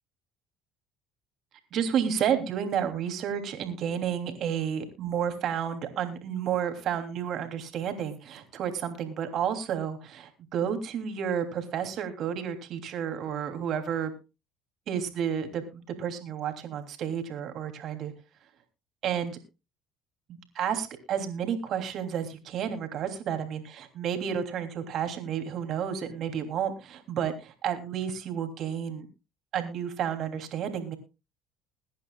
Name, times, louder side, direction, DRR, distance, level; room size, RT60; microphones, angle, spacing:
voice 1, 1.7-14.1 14.9-18.1 19.0-19.4 20.3-29.1 29.5-31.0, right 8 dB, 55° right, 7 dB, 3.1 m, -31 dB
22.0 x 10.5 x 2.4 m, 0.29 s
hypercardioid pair, 70°, 0 cm